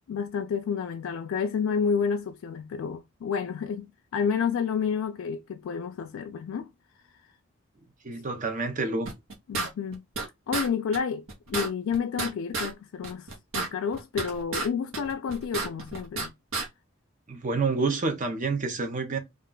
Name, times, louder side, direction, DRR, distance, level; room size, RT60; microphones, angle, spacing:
voice 1, 0.1-6.7 9.5-10.0 10.5-13.3 13.5-16.3, left 6 dB, 85° left, 0.3 m, -30 dB
voice 2, 8.0-9.1 17.3-19.2, right 3 dB, 40° right, 0.6 m, -28 dB
sound 1, 9.0-10.3 10.5-10.7 10.9-11.0 11.3-12.7 13.0-14.7 14.9-16.3 16.5-16.7, right 3 dB, 80° right, 0.9 m, -31 dB
2.5 x 2.2 x 3.7 m
head